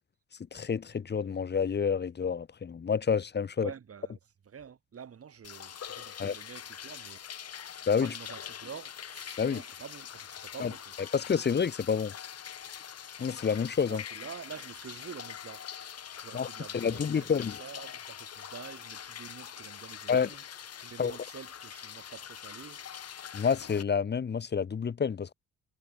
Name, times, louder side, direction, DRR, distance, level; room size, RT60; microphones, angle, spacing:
voice 1, 0.5-3.7 6.2-6.3 7.9-8.1 9.4-9.6 10.6-10.7 11.1-12.1 13.2-14.0 16.3-16.5 16.7-17.6 20.1-20.3 21.0-21.1 23.3-25.3, left 6 dB, 35° left, 1.2 m, -28 dB
voice 2, 3.6-7.2 8.0-11.0 13.9-15.7 16.2-20.4 20.8-22.8, right 7 dB, 50° right, 7.6 m, -47 dB
sound 1, 5.4-23.8, left 9 dB, 55° left, 2.9 m, -44 dB
cardioid pair, 90°, 30 cm